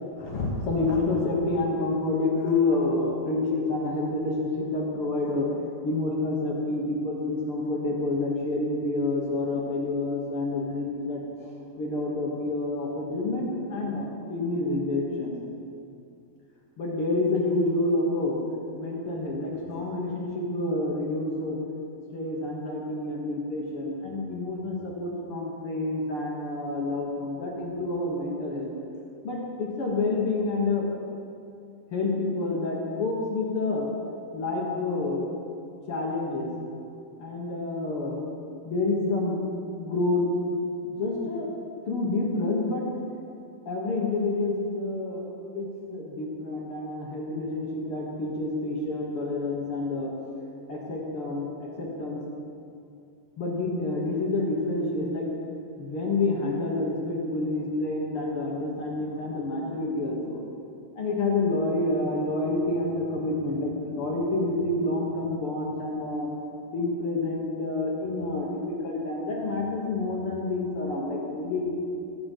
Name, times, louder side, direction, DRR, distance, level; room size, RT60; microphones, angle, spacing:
voice 1, 0.2-5.5 5.8-11.2 11.8-15.3 16.8-18.4 18.7-21.6 22.1-28.7 29.2-30.8 31.9-33.9 34.3-35.3 35.9-36.5 37.2-38.2 38.7-39.4 39.8-40.3 40.8-41.5 41.9-42.9 43.7-45.2 45.5-50.1 50.7-52.2 53.4-55.3 55.8-60.4 61.0-66.3 66.7-71.7, left 2 dB, 55° left, -2 dB, 1.6 m, -28 dB
15.0 x 8.0 x 5.4 m, 2.5 s
omnidirectional pair, 4.3 m